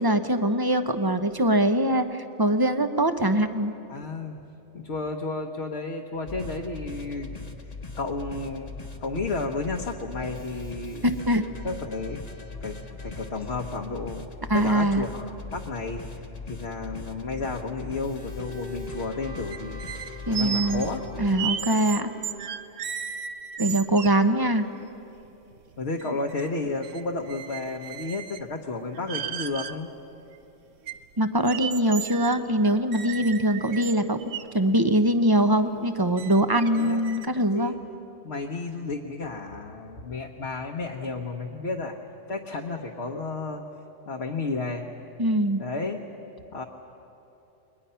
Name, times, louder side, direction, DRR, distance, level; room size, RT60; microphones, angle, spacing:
voice 1, 0.0-3.7 11.0-11.4 14.5-15.0 20.3-20.9 21.2-22.1 23.6-24.7 31.2-34.2 34.5-37.7 45.2-45.6, right 1 dB, 20° right, 9 dB, 0.8 m, -23 dB
voice 2, 3.9-4.4 4.7-7.5 8.0-8.7 9.0-11.1 11.6-12.3 12.6-14.3 14.5-16.0 16.5-21.0 25.8-29.9 36.7-37.0 37.4-37.8 38.2-42.0 42.3-43.6 44.1-44.9 45.6-46.0 46.5-46.6, left 3 dB, 60° left, 0 dB, 1.4 m, -32 dB
sound 1, 6.3-21.3, left 3 dB, 35° left, 1.2 m, -40 dB
Bowed string instrument, 17.9-22.4, right 1 dB, 55° right, 4.7 m, -43 dB
sound 2, 19.5-24.3 24.8-24.9 25.2-26.5 26.8-28.5 28.9-29.8 30.3-30.4 30.9-34.5 35.1-35.2 35.7-35.8 36.2-37.3, right 8 dB, 80° right, 1.1 m, -35 dB
30.0 x 22.5 x 5.7 m, 2.9 s
omnidirectional pair, 1.3 m